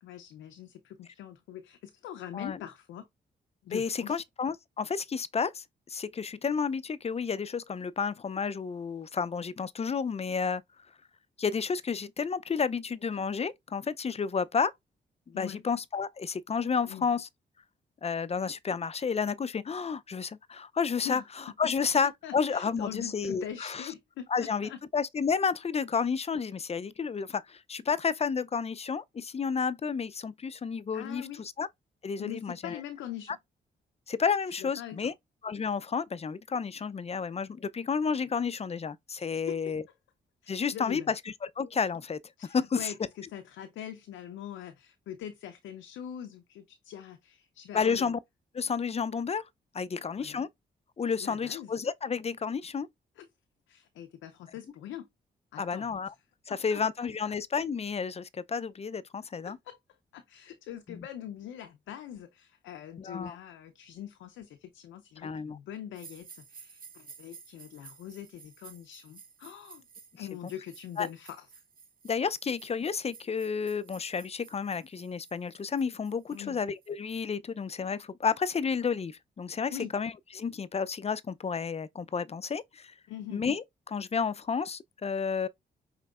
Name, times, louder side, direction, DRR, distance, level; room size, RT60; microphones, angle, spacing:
voice 1, 0.0-3.1 3.6-4.2 15.3-15.6 16.9-17.1 21.0-21.2 22.2-24.8 30.9-31.4 32.2-33.4 34.5-35.1 39.5-39.6 40.4-41.1 42.4-48.1 50.2-50.5 51.2-51.7 53.2-53.3 53.7-55.1 55.5-55.9 56.5-56.8 57.2-57.3 59.4-59.8 60.1-69.8 70.2-71.5 76.3-76.6 79.7-79.9 83.1-83.4, left 10 dB, 90° left, 0.6 m, -43 dB
voice 2, 3.7-10.6 11.4-14.7 15.3-17.3 18.0-23.9 24.3-31.7 32.0-32.8 34.1-35.1 35.4-39.8 40.5-42.2 42.5-42.9 47.7-48.2 48.5-49.4 49.7-50.5 51.0-52.9 55.6-56.1 56.5-59.6 60.9-61.0 63.0-63.4 65.2-65.6 71.0-71.1 72.0-82.9 83.3-85.5, left 6 dB, 35° left, 0.4 m, -31 dB
sound 1, 65.9-76.9, right 6 dB, 45° right, 0.9 m, -54 dB
5.3 x 3.1 x 2.3 m
supercardioid pair, 50°, 19 cm